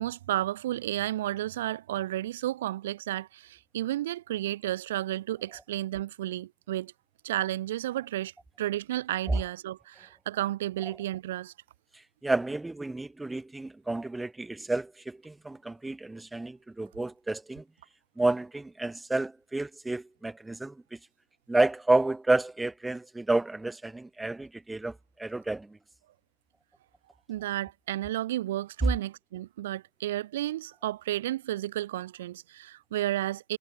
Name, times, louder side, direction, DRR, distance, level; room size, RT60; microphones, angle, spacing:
voice 1, 0.0-6.9 7.2-8.3 8.6-11.5 27.3-33.6, right 14 dB, 70° right, 1.5 m, -32 dB
voice 2, 12.2-17.6 18.2-21.0 21.5-25.8, right 2 dB, 10° right, 2.0 m, -30 dB
hypercardioid pair, 95°, 0 cm